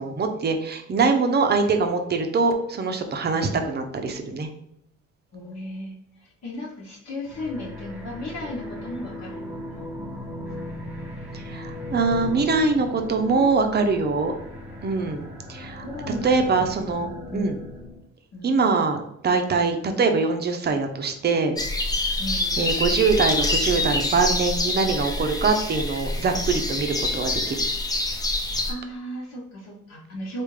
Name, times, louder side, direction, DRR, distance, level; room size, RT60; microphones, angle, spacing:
voice 1, 0.0-4.5 11.3-14.3 14.8-15.8 16.2-17.6 18.4-21.5 22.6-27.6, right 4 dB, 35° right, 5 dB, 0.6 m, -23 dB
voice 2, 5.3-5.9 6.4-9.9 15.8-16.4 17.0-17.5 18.3-18.7 22.2-22.6 28.7-30.4, left 1 dB, 60° left, -5 dB, 1.2 m, -35 dB
sound 1, 7.2-18.0, left 1 dB, 5° right, 1.3 m, -37 dB
sound 2, 21.6-28.7, left 2 dB, 15° left, 0.5 m, -26 dB
3.5 x 2.4 x 3.2 m, 0.80 s
cardioid pair, 90°, 30 cm